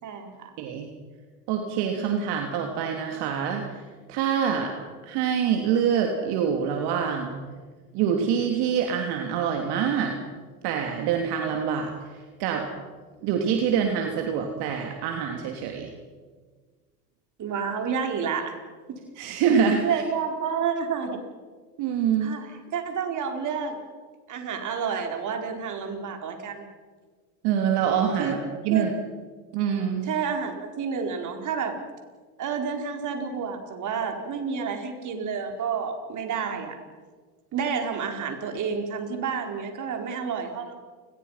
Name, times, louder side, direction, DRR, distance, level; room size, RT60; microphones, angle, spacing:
voice 1, 0.0-0.5 17.4-18.5 18.9-19.0 19.8-21.2 22.2-23.8 24.3-26.7 28.2-28.4 28.7-28.9 30.1-31.8 32.4-36.8 37.5-40.7, right 6 dB, 40° right, 4 dB, 4.8 m, -30 dB
voice 2, 0.6-0.9 1.5-4.7 5.0-7.3 7.9-10.1 10.6-12.6 13.2-15.9 19.1-20.0 21.8-22.4 27.4-28.4 28.6-28.9 29.5-30.1, right 7 dB, 55° right, 2 dB, 3.2 m, -25 dB
29.5 x 21.5 x 5.9 m, 1.5 s
hypercardioid pair, 105°, 46 cm